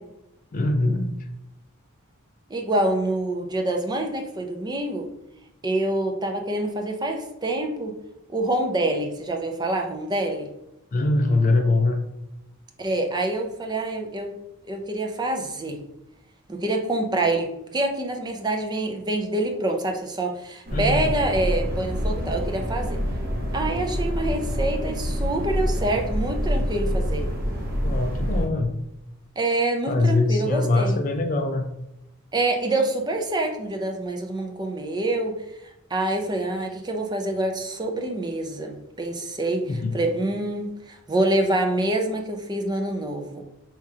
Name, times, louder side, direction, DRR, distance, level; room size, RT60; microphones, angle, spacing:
voice 1, 0.5-1.1 10.9-12.0 20.7-21.1 23.3-23.4 23.8-23.9 27.8-28.8 29.9-31.7 39.7-40.0, left 2 dB, 35° left, 4 dB, 0.4 m, -23 dB
voice 2, 2.5-5.1 5.6-7.9 8.3-10.5 12.8-14.3 14.6-15.8 16.5-23.0 23.5-27.2 29.4-31.0 32.3-35.3 35.9-39.6 39.9-43.4, right 2 dB, 20° right, 3 dB, 0.5 m, -26 dB
sound 1, 20.7-28.5, equal, 40° right, 1.0 m, -26 dB
4.7 x 3.6 x 2.8 m, 0.90 s
head